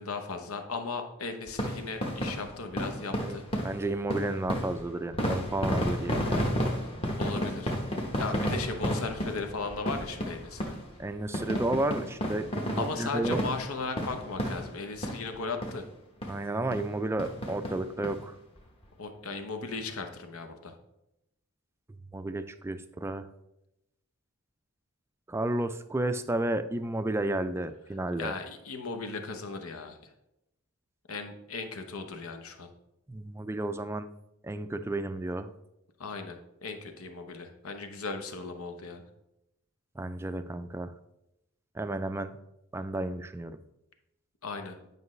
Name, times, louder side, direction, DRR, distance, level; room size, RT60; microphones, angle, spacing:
voice 1, 0.0-3.4 7.2-7.7 8.2-10.8 12.8-15.9 19.0-20.8 28.2-30.1 31.1-32.7 36.0-39.0 44.4-44.8, left 4 dB, 80° left, 6 dB, 0.9 m, -37 dB
sound 1, 1.5-15.4 15.6-15.8 16.2-16.3 16.7-16.9 17.2-18.1 18.6-18.7 18.8-18.9, equal, 25° left, 1.0 m, -32 dB
voice 2, 3.6-6.6 11.0-13.4 16.3-18.4 21.9-23.3 25.3-28.3 33.1-34.1 34.4-35.5 40.0-40.9 41.7-42.3 42.7-43.6, right 2 dB, 10° right, 10 dB, 0.3 m, -32 dB
9.6 x 5.3 x 3.2 m, 0.87 s
head